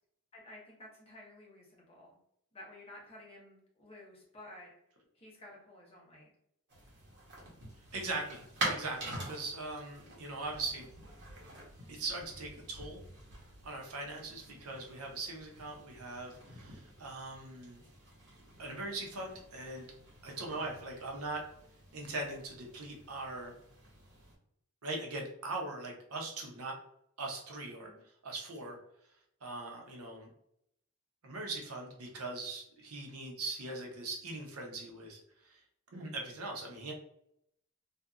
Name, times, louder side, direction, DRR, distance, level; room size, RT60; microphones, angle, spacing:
voice 1, 0.3-2.2 2.5-4.7 5.1-6.3 27.8-28.0, left 1 dB, 30° left, -4 dB, 1.0 m, -53 dB
sound 1, 6.7-24.4, right 2 dB, 55° right, 1.1 m, -46 dB
voice 2, 7.9-10.9 11.9-13.0 13.6-17.9 18.6-19.9 20.2-21.4 21.9-23.5 24.8-26.8 27.2-27.9 28.2-28.8 29.4-30.3 31.2-35.2 35.4-35.6 35.9-36.9, right 2 dB, 90° right, 1 dB, 0.7 m, -40 dB
2.7 x 2.5 x 2.4 m, 0.75 s
head